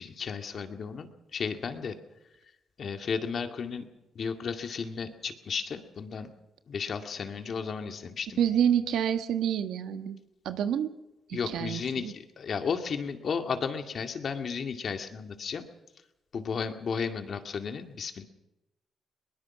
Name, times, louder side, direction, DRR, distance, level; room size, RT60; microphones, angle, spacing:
voice 1, 0.0-2.0 2.8-3.9 4.1-6.3 6.7-8.4 11.3-15.7 16.3-18.2, left 6 dB, 50° left, 6 dB, 2.2 m, -34 dB
voice 2, 8.4-10.2 10.4-10.9 11.3-12.1, right 9 dB, 75° right, 9 dB, 1.5 m, -28 dB
22.0 x 20.5 x 6.0 m, 0.93 s
cardioid pair, 90°, 0 cm